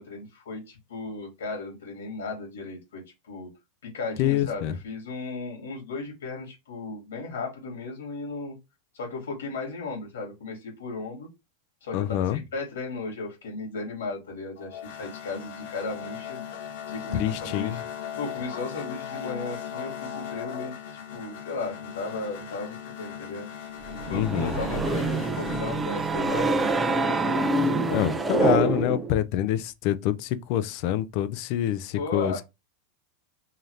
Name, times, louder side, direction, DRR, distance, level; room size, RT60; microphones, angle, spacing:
voice 1, 0.0-3.5 3.8-8.5 8.9-11.3 11.8-16.4 16.9-17.8 18.2-23.5 24.1-28.5 32.0-32.4, left 3 dB, 90° left, 2.1 m, -35 dB
voice 2, 4.2-4.7 11.9-12.4 17.1-17.8 24.1-24.5 27.9-32.3, left 12 dB, 55° left, 0.5 m, -26 dB
sound 1, 14.6-25.7, left 9 dB, 75° left, 1.4 m, -38 dB
sound 2, 23.9-29.2, right 3 dB, 15° right, 0.5 m, -26 dB
3.9 x 2.8 x 3.2 m
supercardioid pair, 125°, 0 cm